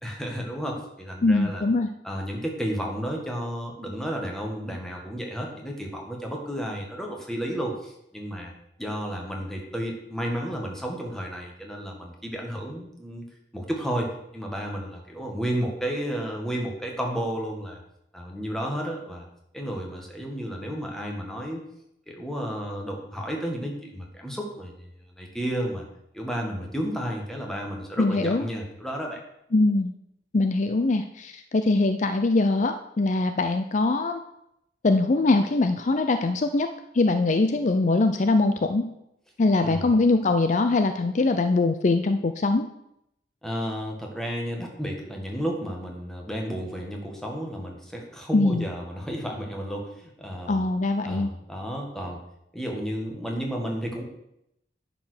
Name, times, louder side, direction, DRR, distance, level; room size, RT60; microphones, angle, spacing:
voice 1, 0.0-1.6 2.0-8.5 8.8-13.2 13.5-17.8 18.1-19.3 19.5-21.6 22.1-24.7 25.2-25.8 26.1-29.2 39.6-39.9 43.4-50.7 51.0-52.2 52.5-54.0, equal, 5° left, 0 dB, 1.8 m, -32 dB
voice 2, 1.2-1.9 28.0-28.4 29.5-29.9 30.3-34.2 34.8-36.7 36.9-38.9 39.4-42.7 48.3-48.6 50.5-51.3, left 2 dB, 45° left, 8 dB, 0.5 m, -22 dB
10.5 x 5.1 x 6.6 m, 0.81 s
head